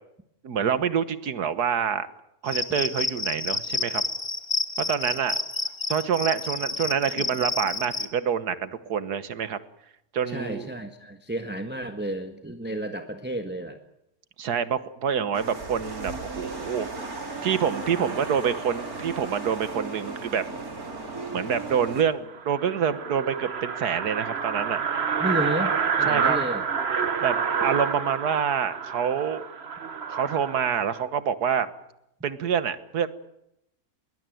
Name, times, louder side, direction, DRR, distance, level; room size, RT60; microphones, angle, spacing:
voice 1, 0.4-2.1 2.4-4.0 4.8-5.4 5.9-9.6 10.1-10.7 14.4-16.9 17.4-20.5 21.3-24.8 26.0-26.4 27.2-29.5 30.1-31.7 32.2-33.1, right 7 dB, 90° right, 13 dB, 1.8 m, -26 dB
Cricket, 2.5-8.1, left 3 dB, 20° left, 1.0 m, -29 dB
voice 2, 10.3-13.8 25.2-26.6, right 1 dB, 5° right, 5 dB, 1.3 m, -31 dB
sound 1, 15.3-22.0, right 3 dB, 65° right, 3.7 m, -36 dB
sound 2, 21.1-21.2 21.6-21.7 22.0-22.1 22.3-31.0, right 6 dB, 45° right, 1.3 m, -28 dB
21.5 x 19.5 x 9.2 m, 0.83 s
omnidirectional pair, 1.6 m